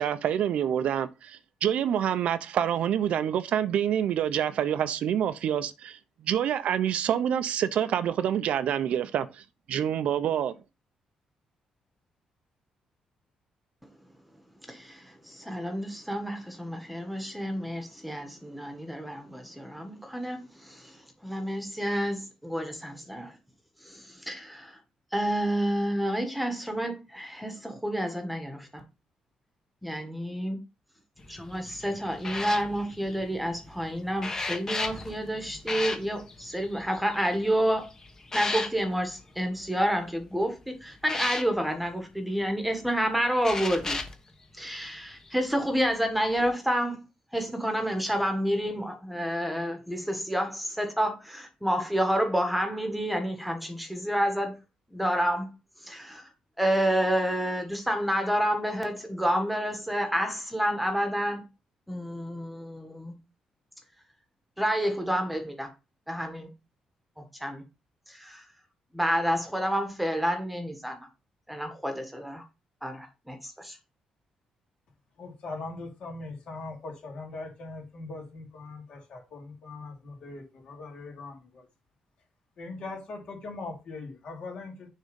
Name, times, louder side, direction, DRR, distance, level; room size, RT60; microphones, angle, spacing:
voice 1, 0.0-10.5, right 9 dB, 70° right, 0.6 m, -27 dB
voice 2, 14.7-21.0 21.2-23.4 23.8-24.8 25.1-28.8 29.8-30.6 31.3-37.9 38.3-44.0 44.6-47.0 47.3-54.5 54.9-55.5 55.8-56.2 56.6-61.4 61.9-63.2 64.6-65.7 66.1-66.5 67.2-67.6 68.1-68.4 68.9-71.0 71.5-72.4 72.8-73.8, equal, ahead, 1.3 m, -29 dB
sound 1, 31.2-39.6 40.1-40.4 41.0-41.4 42.8-42.9 43.4-44.1 45.1-45.3 46.2-46.5, left 3 dB, 25° left, 1.1 m, -36 dB
voice 3, 75.2-81.6 82.6-84.9, left 3 dB, 60° left, 2.9 m, -40 dB
6.6 x 3.6 x 5.2 m
cardioid pair, 120°, 2 cm